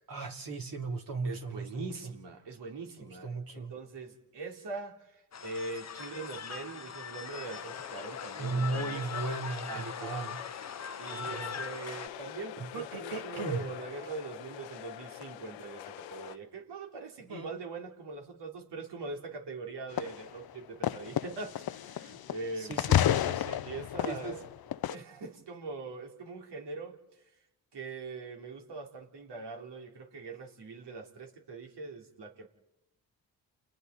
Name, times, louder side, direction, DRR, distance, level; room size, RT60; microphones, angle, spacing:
voice 1, 0.1-2.1 3.0-3.7 8.4-10.4 11.1-11.6 12.6-13.6 17.3-17.5 22.6-23.6 24.1-24.4, right 3 dB, 50° right, 1 dB, 2.9 m, -37 dB
voice 2, 1.2-9.2 9.7-10.3 11.0-23.0 23.6-24.4 24.8-27.0 27.7-32.5, right 3 dB, 65° right, 2 dB, 3.2 m, -42 dB
sound 1, 5.3-12.1, left 7 dB, 35° left, 1.0 m, -41 dB
sound 2, 7.3-16.4, left 12 dB, 85° left, 1.1 m, -45 dB
sound 3, 20.0-20.3 20.8-22.5 22.7-25.0, left 11 dB, 55° left, 0.7 m, -30 dB
29.5 x 23.0 x 4.1 m, 0.91 s
hypercardioid pair, 45°, 44 cm